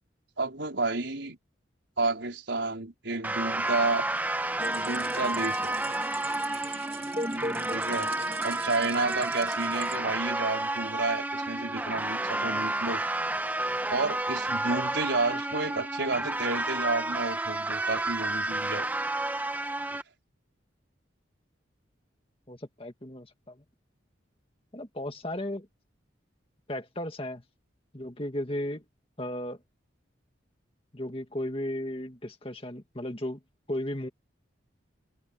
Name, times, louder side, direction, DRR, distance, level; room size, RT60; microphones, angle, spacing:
voice 1, 0.4-1.4 2.0-4.1 4.7-5.8 7.7-8.1 8.4-13.0 13.9-18.9, right 3 dB, 75° right, 4.5 m, -31 dB
sound 1, 3.2-20.0, right 2 dB, 10° right, 1.0 m, -31 dB
sound 2, 4.6-10.0, right 1 dB, 30° right, 1.9 m, -38 dB
voice 2, 7.4-7.7 22.5-23.6 24.7-25.7 26.7-27.4 27.9-28.8 29.2-29.6 30.9-33.4 33.7-34.1, left 1 dB, 30° left, 2.1 m, -35 dB
head